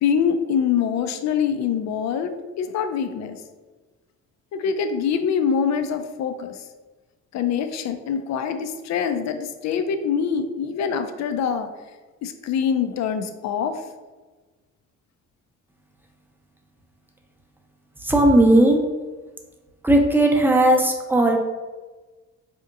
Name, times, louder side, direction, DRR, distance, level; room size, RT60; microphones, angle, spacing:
voice 1, 0.0-3.4 4.5-6.6 7.3-11.7 12.2-13.8, left 7 dB, 65° left, 8 dB, 0.4 m, -24 dB
voice 2, 18.0-18.8 19.8-21.4, right 1 dB, 5° right, 1 dB, 0.5 m, -16 dB
4.3 x 2.8 x 2.5 m, 1.3 s
cardioid pair, 90°, 30 cm